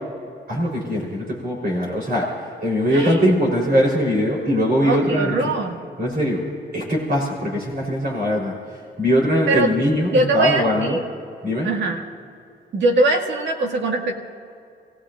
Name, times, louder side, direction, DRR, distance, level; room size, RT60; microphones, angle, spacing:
voice 1, 0.5-2.3 2.6-5.5 6.0-6.4 6.7-8.5 9.0-11.0 11.4-11.7, equal, 55° right, -3 dB, 4.0 m, -21 dB
voice 2, 2.9-3.3 4.8-5.8 9.5-9.7 10.1-11.0 11.6-12.0 12.7-14.1, right 2 dB, 80° right, 1 dB, 2.0 m, -21 dB
29.0 x 17.0 x 2.6 m, 2.4 s
wide cardioid pair, 135°, 19 cm